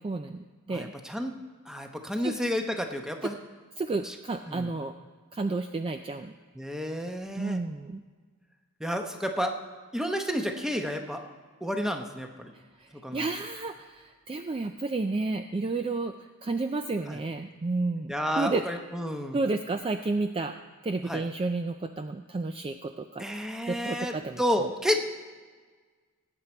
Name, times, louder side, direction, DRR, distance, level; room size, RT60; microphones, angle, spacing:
voice 1, 0.0-0.9 2.2-2.4 3.8-4.9 5.3-6.3 7.4-8.0 12.5-18.6 19.3-20.5 20.8-23.3 23.7-24.4, right 3 dB, 25° right, 7 dB, 0.3 m, -31 dB
voice 2, 0.7-1.4 1.7-3.4 4.0-4.1 4.5-4.7 6.6-7.6 8.8-9.6 9.9-11.2 11.6-12.5 13.0-13.2 17.1-17.2 18.1-19.4 21.0-21.2 23.2-25.0, equal, ahead, 4 dB, 0.8 m, -31 dB
18.5 x 8.3 x 4.4 m, 1.5 s
head